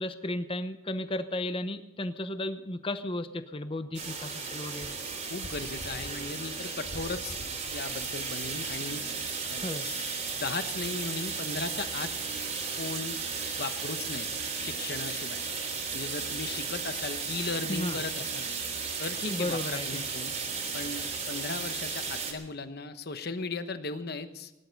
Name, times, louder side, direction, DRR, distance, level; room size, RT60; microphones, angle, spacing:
voice 1, 0.0-5.0 9.6-9.9 17.7-18.0 19.3-20.0, left 1 dB, 25° left, 10 dB, 0.9 m, -34 dB
sound 1, 3.9-22.3, right 5 dB, 40° right, 3.1 m, -35 dB
voice 2, 5.3-9.0 9.4-10.1 10.4-12.1 12.8-13.2 13.6-14.3 14.6-15.4 15.9-18.5 19.0-20.3 20.7-24.6, left 3 dB, 55° left, 10 dB, 1.1 m, -37 dB
19.0 x 11.5 x 5.3 m, 1.0 s
head